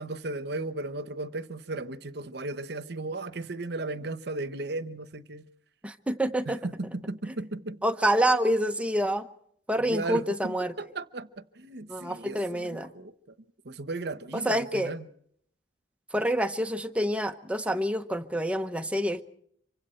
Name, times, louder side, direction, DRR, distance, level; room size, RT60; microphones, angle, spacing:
voice 1, 0.0-5.5 6.5-7.8 9.8-13.1 13.6-15.1, right 2 dB, 65° right, 1.0 m, -36 dB
voice 2, 5.8-6.6 7.8-9.3 9.7-10.7 11.9-12.9 14.3-14.9 16.1-19.2, right 1 dB, 5° right, 0.9 m, -27 dB
26.5 x 24.5 x 4.4 m
head